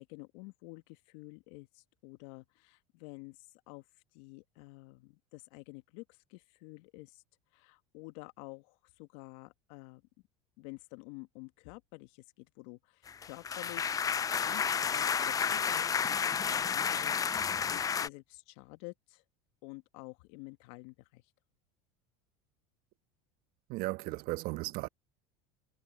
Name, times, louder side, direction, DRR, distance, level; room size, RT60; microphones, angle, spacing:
voice 1, 0.0-3.8 4.1-7.2 7.5-10.0 10.6-14.1 14.4-19.2 19.6-21.2, left 25 dB, 70° left, 2.0 m, -50 dB
sound 1, 13.1-18.1, left 7 dB, 20° left, 0.4 m, -31 dB
voice 2, 23.7-24.9, right 20 dB, 60° right, 1.3 m, -35 dB
hypercardioid pair, 90°, 18 cm